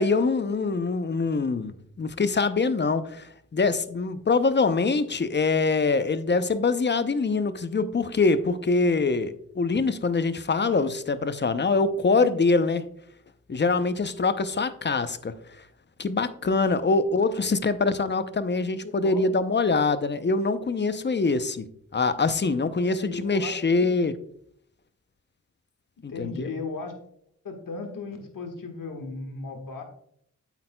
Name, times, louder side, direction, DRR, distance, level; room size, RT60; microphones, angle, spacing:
voice 1, 0.0-12.8 13.5-15.6 16.0-21.7 21.9-24.1 26.0-26.5, left 3 dB, 35° left, 12 dB, 0.6 m, -24 dB
voice 2, 18.8-19.4 22.9-24.0 26.1-26.9 27.4-29.8, left 3 dB, 75° left, 4 dB, 1.5 m, -36 dB
8.5 x 8.2 x 2.2 m, 0.68 s
cardioid pair, 60°, 33 cm